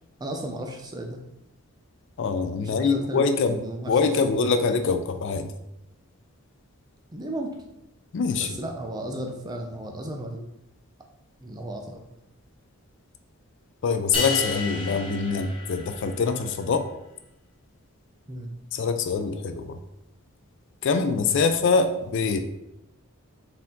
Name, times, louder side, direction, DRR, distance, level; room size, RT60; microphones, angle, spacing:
voice 1, 0.2-1.2 2.6-3.2 3.5-3.9 7.1-7.5 8.4-10.5 11.4-12.0 18.3-18.5, right 1 dB, 20° right, 3 dB, 0.4 m, -34 dB
voice 2, 2.2-3.6 3.9-5.5 8.1-8.6 13.8-16.8 18.7-19.8 20.8-22.4, left 4 dB, 55° left, 8 dB, 0.3 m, -24 dB
sound 1, 14.1-16.4, left 4 dB, 25° left, 0.7 m, -31 dB
4.2 x 2.8 x 3.6 m, 0.85 s
head